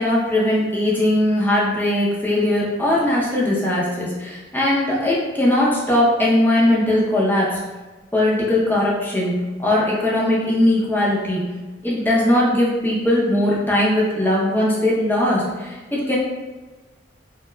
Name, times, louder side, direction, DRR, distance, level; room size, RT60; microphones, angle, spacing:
voice 1, 0.0-7.6 8.1-9.3 9.6-11.4 11.8-16.1, left 1 dB, 10° left, -6 dB, 0.6 m, -19 dB
3.2 x 2.8 x 2.2 m, 1.2 s
head